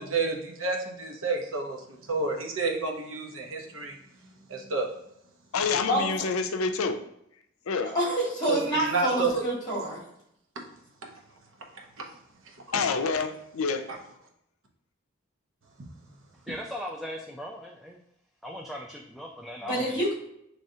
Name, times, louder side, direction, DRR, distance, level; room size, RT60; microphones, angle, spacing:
voice 1, 0.0-1.8 2.1-3.9 4.5-4.9 8.5-8.6 8.9-9.4 10.6-10.7 11.0-11.1 12.0-12.1, right 3 dB, 75° right, 1 dB, 0.9 m, -29 dB
voice 2, 5.5-7.0 7.7-7.9 12.7-13.9, left 4 dB, 90° left, 8 dB, 0.5 m, -27 dB
voice 3, 7.9-10.0 19.6-20.1, right 1 dB, 20° left, -5 dB, 1.9 m, -27 dB
voice 4, 16.5-18.0 18.4-20.0, equal, ahead, -1 dB, 0.3 m, -38 dB
6.2 x 3.2 x 2.7 m, 0.76 s
head